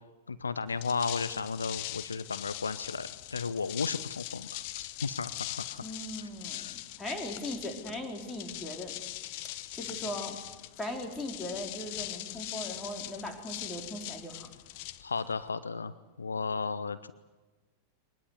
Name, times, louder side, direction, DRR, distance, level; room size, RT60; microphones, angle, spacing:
voice 1, 0.3-5.8 6.5-6.7 15.0-17.1, left 4 dB, 75° left, 14 dB, 0.8 m, -34 dB
sound 1, 0.7-15.5, left 16 dB, 45° left, 1.1 m, -41 dB
voice 2, 5.8-9.0 9.7-10.4 10.8-14.5, left 1 dB, 10° left, 3 dB, 4.5 m, -39 dB
23.5 x 20.0 x 9.7 m, 1.2 s
figure-of-eight pair, 90°, 0 cm